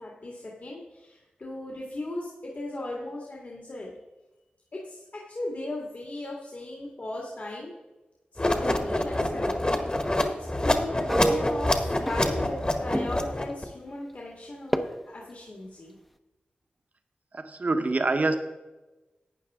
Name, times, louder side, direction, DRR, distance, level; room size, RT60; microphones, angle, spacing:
voice 1, 0.0-3.9 4.7-7.7 8.3-9.5 10.2-10.3 10.6-16.0, left 2 dB, 55° left, -3 dB, 2.0 m, -37 dB
sound 1, 8.4-13.6, left 1 dB, 30° left, 1.5 m, -26 dB
sound 2, 11.1-12.7 12.9-13.4 14.7-14.8, right 1 dB, 5° left, 0.8 m, -29 dB
voice 2, 17.3-18.3, right 3 dB, 55° right, 7 dB, 1.1 m, -25 dB
12.0 x 8.9 x 3.7 m, 1.1 s
cardioid pair, 50°, 3 cm